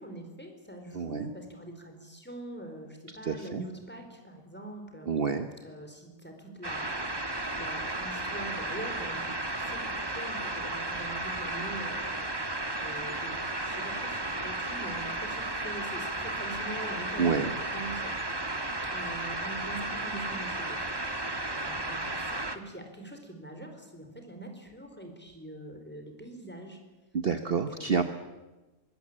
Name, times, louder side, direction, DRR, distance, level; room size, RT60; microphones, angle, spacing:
voice 1, 0.0-5.1 5.6-12.1 12.8-18.2 18.9-26.8 27.3-28.0, right 1 dB, 5° left, 4 dB, 4.6 m, -44 dB
voice 2, 0.9-1.3 3.2-3.6 5.1-5.5 17.2-17.5 27.1-28.0, right 5 dB, 45° right, 8 dB, 1.3 m, -28 dB
sound 1, 6.6-22.6, right 2 dB, 15° right, 1.5 m, -34 dB
24.0 x 22.0 x 8.8 m, 1.1 s
omnidirectional pair, 1.5 m